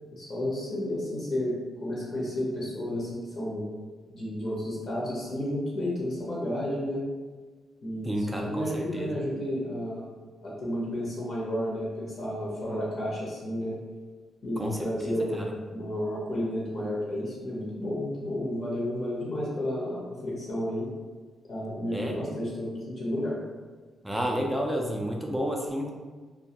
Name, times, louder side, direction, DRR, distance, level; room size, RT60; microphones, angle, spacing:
voice 1, 0.2-1.6 1.8-3.7 4.1-7.0 7.8-10.1 10.4-13.8 14.4-15.4 15.7-20.9 21.5-23.4, left 1 dB, 50° left, -6 dB, 0.7 m, -32 dB
voice 2, 8.0-9.1 14.6-15.5 21.9-22.2 24.0-25.9, equal, 5° right, 0 dB, 0.3 m, -31 dB
2.2 x 2.1 x 2.7 m, 1.4 s
cardioid pair, 105°, 0 cm